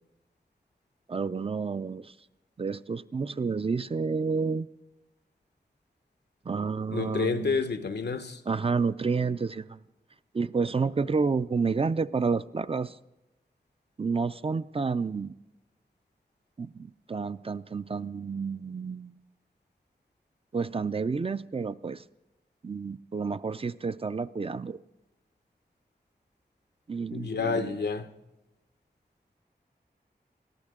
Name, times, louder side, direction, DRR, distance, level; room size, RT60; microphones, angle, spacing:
voice 1, 1.1-2.1 2.6-4.7 6.5-7.6 8.5-9.8 10.3-13.0 14.0-15.4 16.6-19.2 20.5-22.0 22.6-24.8 26.9-27.8, right 4 dB, 35° right, 0.4 m, -30 dB
voice 2, 6.9-8.4 27.1-28.1, left 4 dB, 90° left, 0.8 m, -29 dB
22.0 x 13.5 x 3.6 m
wide cardioid pair, 80°, 17 cm